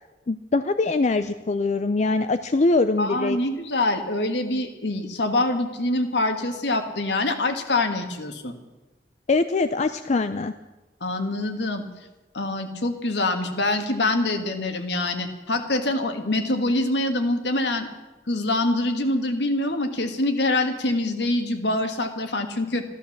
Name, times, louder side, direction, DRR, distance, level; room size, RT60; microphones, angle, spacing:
voice 1, 0.3-3.4 9.3-10.5, left 3 dB, 40° left, 10 dB, 0.5 m, -23 dB
voice 2, 3.0-8.6 11.0-11.8 12.3-17.9 18.3-22.8, left 2 dB, 75° left, 6 dB, 1.7 m, -25 dB
14.0 x 13.0 x 7.2 m, 1.1 s
head